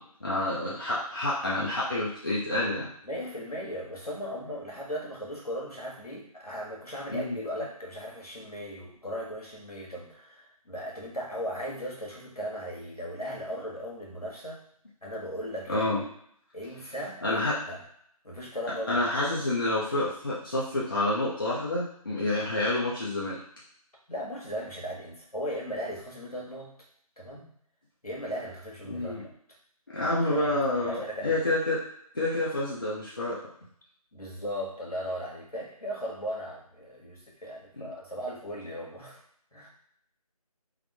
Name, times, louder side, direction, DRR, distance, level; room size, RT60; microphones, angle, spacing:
voice 1, 0.0-2.9 7.1-7.4 15.7-16.1 17.2-17.5 18.9-23.4 28.9-29.3 29.9-31.8 32.1-33.4 37.8-37.9, left 2 dB, 35° left, -8 dB, 0.7 m, -28 dB
voice 2, 3.0-14.6 15.0-15.8 16.5-17.8 18.2-19.0 24.1-26.7 27.2-27.5 28.0-29.3 30.1-31.4 34.1-39.2 39.5-39.7, equal, 75° left, -4 dB, 1.4 m, -37 dB
3.5 x 2.1 x 3.4 m, 0.68 s
figure-of-eight pair, 165°, 19 cm